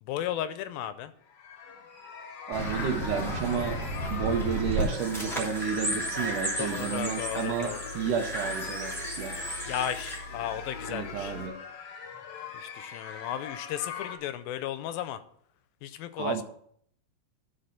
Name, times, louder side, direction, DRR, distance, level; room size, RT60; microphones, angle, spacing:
voice 1, 0.0-1.1 6.6-7.9 9.7-11.3 12.5-15.2 15.8-16.4, left 11 dB, 80° left, 12 dB, 2.4 m, -35 dB
sound 1, 1.2-14.2, left 6 dB, 65° left, 1.9 m, -42 dB
sound 2, 2.5-10.2, right 1 dB, ahead, 2.2 m, -34 dB
voice 2, 2.5-3.8 4.1-9.6 10.9-11.6 16.2-16.4, right 7 dB, 70° right, 5 dB, 2.2 m, -31 dB
sound 3, 4.4-11.5, left 1 dB, 15° left, 2.4 m, -44 dB
12.0 x 4.8 x 5.7 m, 0.65 s
omnidirectional pair, 4.2 m